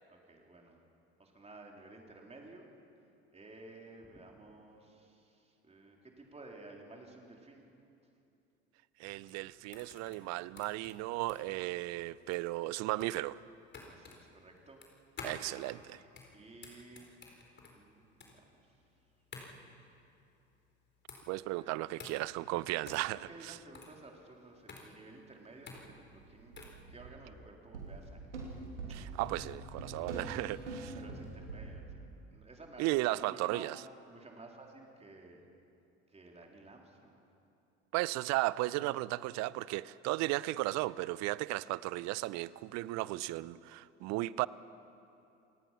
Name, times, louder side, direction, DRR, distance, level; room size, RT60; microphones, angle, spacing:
voice 1, 0.1-0.8 1.2-2.7 3.3-7.6 13.9-14.8 16.3-17.2 17.7-18.9 21.5-22.0 22.9-26.5 26.9-28.3 28.9-29.0 30.9-33.7 34.1-35.5 36.1-37.2, right 2 dB, 20° right, 3.8 m, -54 dB
voice 2, 9.0-13.4 15.2-16.0 21.3-23.6 28.9-30.9 32.8-33.7 37.9-44.5, right 18 dB, 50° right, 0.6 m, -35 dB
sound 1, 9.1-26.8, left 4 dB, 30° left, 4.2 m, -52 dB
sound 2, 25.8-25.9 26.2-27.3 27.7-31.8, right 3 dB, 85° right, 2.9 m, -44 dB
28.0 x 18.0 x 5.8 m
figure-of-eight pair, 65°, 35 cm